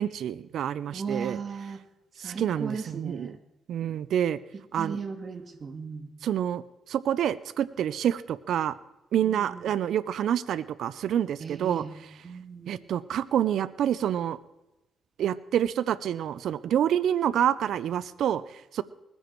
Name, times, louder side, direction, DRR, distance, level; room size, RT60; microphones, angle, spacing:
voice 1, 0.0-1.4 2.2-3.3 3.7-4.4 4.7-5.0 6.2-6.6 6.9-8.7 9.1-11.8 12.7-14.4 15.2-18.8, right 10 dB, 70° right, 17 dB, 0.6 m, -27 dB
voice 2, 0.9-1.8 2.2-3.4 4.7-6.1 9.2-9.7 11.4-12.0 12.2-12.8, right 5 dB, 40° right, 8 dB, 1.9 m, -37 dB
20.0 x 14.5 x 4.6 m, 0.98 s
cardioid pair, 90°, 0 cm